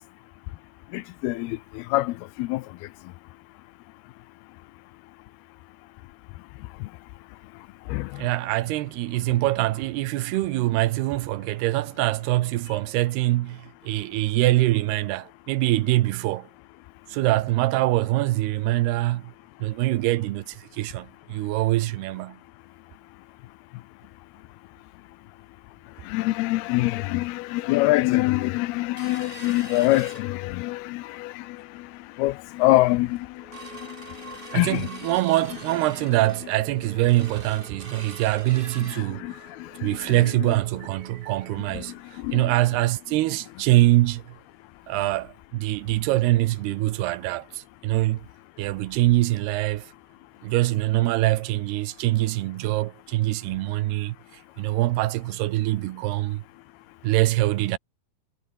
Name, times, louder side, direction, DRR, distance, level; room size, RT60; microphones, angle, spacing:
voice 1, 0.9-2.7 6.8-6.9 7.9-8.3 26.0-31.9 32.2-34.9 38.8-40.5 41.7-42.5, left 19 dB, 80° left, 2.6 m, -26 dB
voice 2, 8.2-16.5 17.1-19.3 19.6-22.4 34.5-39.4 39.8-41.9 42.3-44.2 44.9-48.2 48.6-49.9 50.4-54.2 54.6-56.4 57.0-57.8, right 17 dB, 85° right, 2.9 m, -24 dB
sound 1, 29.0-30.8 31.2-31.3 31.7-32.0 32.5-32.6 32.9-43.5 43.8-43.9 44.3-44.4 45.0-45.1, right 3 dB, 25° right, 1.3 m, -45 dB
omnidirectional pair, 4.6 m